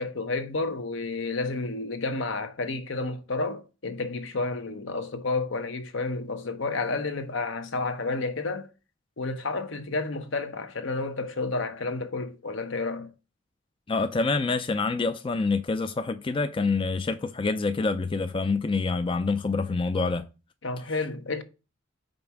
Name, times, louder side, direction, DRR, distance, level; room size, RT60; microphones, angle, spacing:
voice 1, 0.0-8.7 9.2-13.1 20.6-21.4, left 3 dB, 70° left, 0.9 m, -31 dB
voice 2, 13.9-20.3, left 3 dB, 25° left, 0.4 m, -26 dB
5.2 x 4.2 x 5.9 m
head